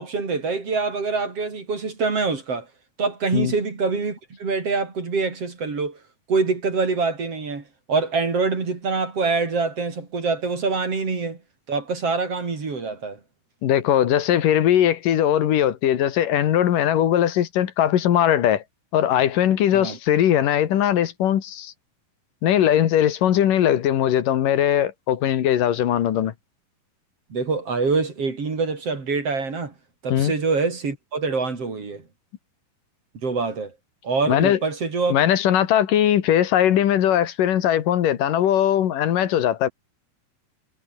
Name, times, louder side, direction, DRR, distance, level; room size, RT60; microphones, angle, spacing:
voice 1, 0.0-2.7 3.0-6.0 6.3-11.4 11.7-13.2 19.7-20.0 27.3-29.7 30.0-32.0 33.2-33.7 34.0-35.2, right 4 dB, 40° right, 5.0 m, -25 dB
voice 2, 13.6-18.6 18.9-21.7 22.4-26.3 30.1-30.3 34.3-34.6 35.1-39.7, left 11 dB, 70° left, 3.1 m, -20 dB
omnidirectional pair, 4.2 m